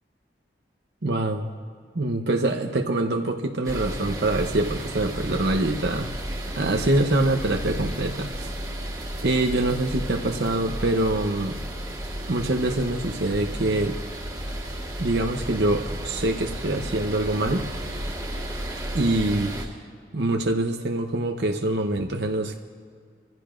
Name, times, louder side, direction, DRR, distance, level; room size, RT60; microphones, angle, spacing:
voice 1, 1.0-1.5 1.9-6.1 6.6-8.5 9.2-11.6 12.3-14.0 15.0-17.7 18.9-19.7 20.1-22.5, right 2 dB, 75° right, 3 dB, 0.8 m, -24 dB
sound 1, 3.6-19.7, right 1 dB, 20° right, 1.7 m, -33 dB
27.0 x 15.5 x 2.5 m, 2.1 s
head